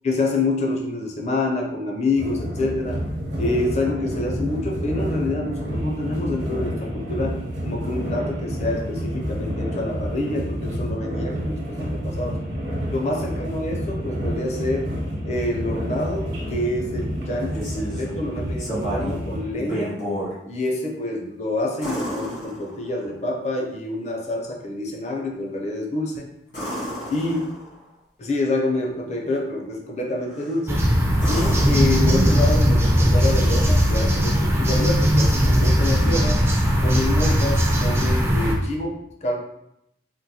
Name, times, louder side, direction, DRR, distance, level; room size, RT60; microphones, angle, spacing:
voice 1, 0.0-3.0 3.4-12.4 12.9-14.9 15.3-20.0 20.5-26.3 27.1-27.5 28.2-30.8 31.3-36.4 36.8-39.4, left 2 dB, 40° left, 0 dB, 0.5 m, -27 dB
sound 1, 2.2-19.5, equal, 70° right, 0.8 m, -29 dB
sound 2, 17.3-18.1 18.6-19.2 19.6-20.3 21.8-23.1 26.5-27.8 30.3-30.7 31.2-32.6 34.7-34.8, equal, 65° left, 1.3 m, -31 dB
sound 3, 30.7-38.5, equal, 15° right, 0.3 m, -19 dB
3.7 x 2.2 x 2.8 m, 0.79 s
head